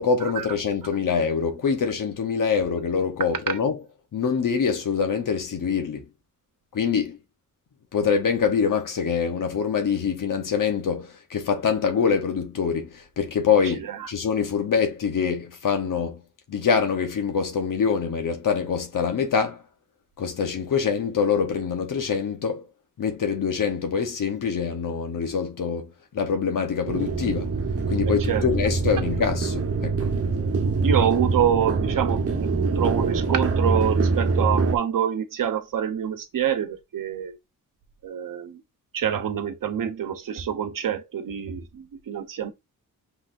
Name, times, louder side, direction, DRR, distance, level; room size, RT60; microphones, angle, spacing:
voice 1, 0.0-3.8 4.1-6.0 6.7-7.2 7.9-13.8 14.1-16.2 16.5-19.6 20.2-22.6 23.0-25.9 26.1-27.5 27.9-30.0, left 6 dB, 65° left, 1.2 m, -24 dB
voice 2, 13.8-14.1 28.1-28.5 30.8-37.4 38.0-38.6 38.9-42.5, right 9 dB, 65° right, 1.0 m, -26 dB
sound 1, 26.9-34.8, right 4 dB, 40° right, 1.1 m, -24 dB
5.6 x 3.5 x 2.6 m
cardioid pair, 75°, 35 cm